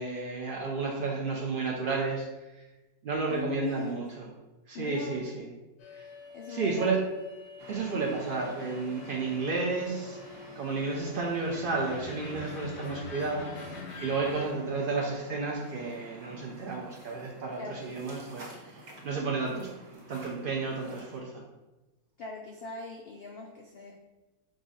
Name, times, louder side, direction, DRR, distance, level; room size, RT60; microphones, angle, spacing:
voice 1, 0.0-2.3 2.6-2.7 3.0-4.3 4.7-5.5 5.9-6.1 6.5-7.0 7.7-13.5 14.0-19.7 20.1-21.4, right 4 dB, 90° right, -1 dB, 0.4 m, -32 dB
voice 2, 3.3-4.0 4.7-5.2 6.3-7.0 17.6-18.0 22.2-24.0, left 4 dB, 85° left, 0 dB, 0.5 m, -40 dB
sound 1, 5.8-14.5, left 4 dB, 60° left, 0.8 m, -45 dB
sound 2, 7.6-21.2, right 1 dB, 65° right, 1.8 m, -50 dB
5.2 x 2.4 x 3.9 m, 1.1 s
omnidirectional pair, 1.6 m